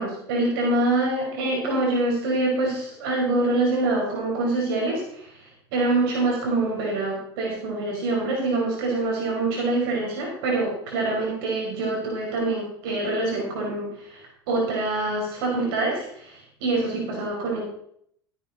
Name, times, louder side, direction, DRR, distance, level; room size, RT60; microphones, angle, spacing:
voice 1, 0.0-5.4 5.7-17.6, right 2 dB, 65° right, -2 dB, 5.2 m, -25 dB
15.5 x 9.1 x 4.3 m, 0.67 s
hypercardioid pair, 80°, 13 cm